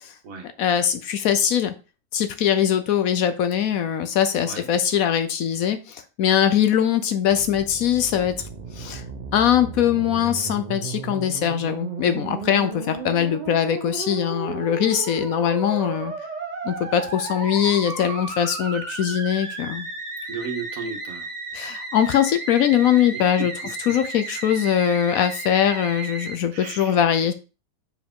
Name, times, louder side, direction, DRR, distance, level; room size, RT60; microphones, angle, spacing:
voice 1, 0.6-1.7 2.1-8.3 8.8-9.0 9.3-16.1 16.6-19.9 21.5-23.5 23.9-27.3, left 9 dB, 65° left, 10 dB, 1.0 m, -21 dB
Musical instrument, 7.3-26.4, right 3 dB, 30° right, 0.9 m, -34 dB
voice 2, 20.3-21.3 23.1-23.5 26.5-27.0, right 5 dB, 55° right, 3 dB, 1.6 m, -34 dB
5.6 x 4.8 x 3.6 m, 0.33 s
omnidirectional pair, 1.8 m